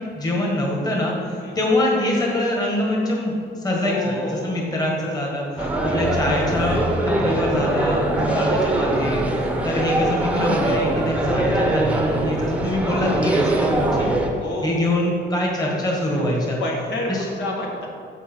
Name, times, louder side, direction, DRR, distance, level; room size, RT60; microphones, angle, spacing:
voice 1, 0.0-5.4 5.8-9.2 9.6-14.1 14.6-16.6 17.1-17.2, left 1 dB, 20° left, -2 dB, 1.6 m, -24 dB
voice 2, 3.8-4.8 5.6-6.0 8.2-8.6 14.3-14.9 16.1-16.2 16.6-17.9, left 1 dB, 70° left, -1 dB, 1.7 m, -30 dB
sound 1, 5.6-14.3, right 1 dB, 5° right, 0.9 m, -22 dB
14.0 x 4.7 x 4.5 m, 2.5 s
cardioid pair, 165°, 19 cm